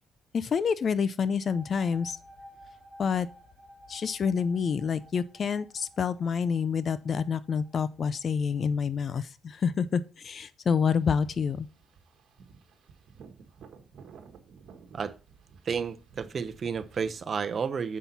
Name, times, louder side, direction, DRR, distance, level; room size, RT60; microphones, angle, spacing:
voice 1, 0.3-2.2 3.0-3.3 3.9-11.7, left 6 dB, 50° left, 0.4 m, -28 dB
sound 1, 1.3-8.7, equal, 15° left, 4.6 m, -54 dB
sound 2, 11.0-17.2, right 6 dB, 70° right, 1.3 m, -53 dB
voice 2, 15.6-18.0, right 6 dB, 45° right, 0.7 m, -31 dB
7.3 x 5.8 x 4.0 m
cardioid pair, 90°, 0 cm